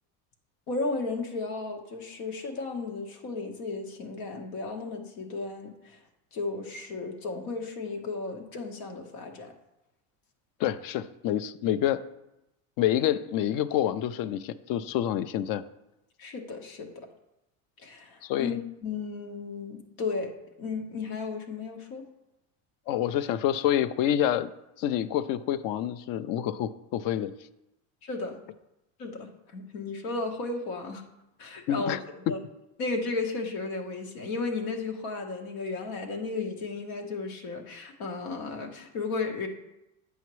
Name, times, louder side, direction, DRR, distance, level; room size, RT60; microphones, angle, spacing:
voice 1, 0.7-6.0 6.3-9.5 16.2-16.9 17.8-20.3 20.6-22.0 28.0-28.4 29.0-31.0 31.4-32.0 32.3-32.4 32.8-39.5, left 3 dB, 85° left, 2 dB, 1.3 m, -34 dB
voice 2, 10.6-12.0 12.8-15.6 18.2-18.6 22.9-24.5 24.8-27.3 31.7-32.0 32.3-32.4, left 11 dB, 50° left, 14 dB, 0.5 m, -27 dB
8.1 x 5.8 x 3.1 m, 0.91 s
supercardioid pair, 120°, 42 cm